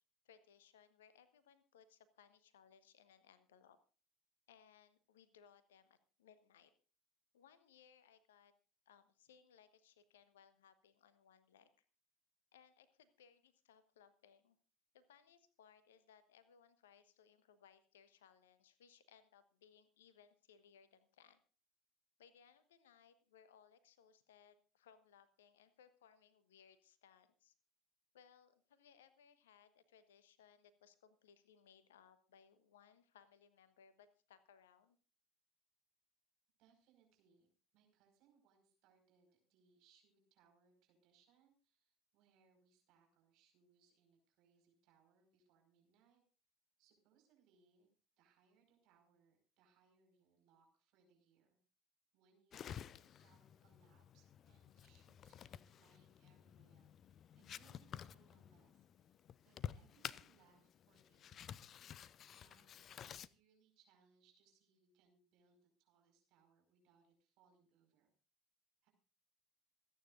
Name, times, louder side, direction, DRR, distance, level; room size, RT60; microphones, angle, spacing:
voice 1, 0.2-3.8 4.5-6.7 7.3-8.5 8.8-11.8 12.5-14.6 14.9-21.4 22.2-27.5 28.1-35.0, left 8 dB, 70° left, 13 dB, 1.3 m, -67 dB
voice 2, 36.6-46.2 46.8-47.9 48.2-51.6 52.1-59.2 59.4-61.6 62.3-68.1 68.8-68.9, right 6 dB, 50° right, 3 dB, 5.2 m, -74 dB
sound 1, 52.5-63.3, left 9 dB, 40° left, 0.5 m, -52 dB
27.0 x 9.5 x 2.6 m, 0.37 s
figure-of-eight pair, 65°, 0 cm